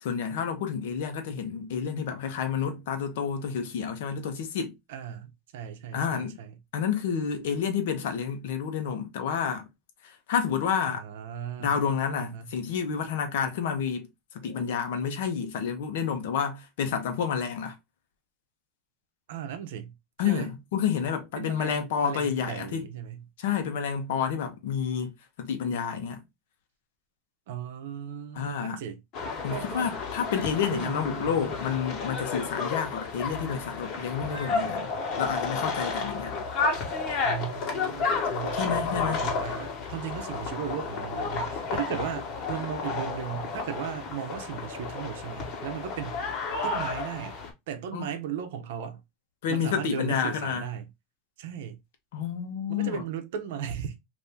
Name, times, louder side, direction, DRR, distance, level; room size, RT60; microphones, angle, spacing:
voice 1, 0.0-4.7 5.9-6.4 6.7-9.7 10.0-11.0 11.6-14.1 14.3-17.7 20.2-22.8 23.4-25.1 25.4-26.2 28.3-28.8 29.4-34.9 35.2-36.3 38.6-39.2 47.9-48.1 49.4-50.6 52.1-53.0, left 7 dB, 80° left, 0.8 m, -29 dB
voice 2, 4.9-6.6 10.9-11.8 12.2-12.5 19.3-20.5 21.4-23.2 27.5-29.0 29.5-29.9 30.7-31.6 37.2-46.2 46.6-47.4 47.7-49.0 49.5-50.9 51.4-51.8 52.7-54.0, right 8 dB, 80° right, 0.7 m, -36 dB
sound 1, 29.1-47.5, left 4 dB, 55° left, 1.2 m, -32 dB
2.7 x 2.7 x 3.4 m
supercardioid pair, 110°, 0 cm